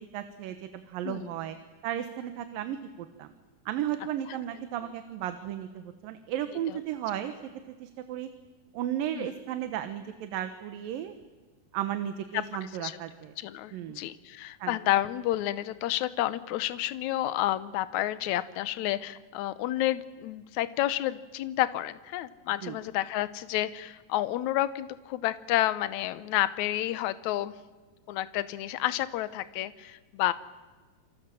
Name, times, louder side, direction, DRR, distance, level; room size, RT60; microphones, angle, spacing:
voice 1, 0.1-1.6 1.8-3.3 3.7-7.3 7.8-8.3 8.7-11.1 11.7-13.3 13.7-14.0 14.6-14.7 22.6-22.8, right 11 dB, 85° right, 9 dB, 2.9 m, -34 dB
voice 2, 12.6-13.0 13.4-27.5 28.1-30.3, left 14 dB, 70° left, 14 dB, 2.0 m, -30 dB
28.5 x 24.0 x 7.7 m, 1.3 s
omnidirectional pair, 3.9 m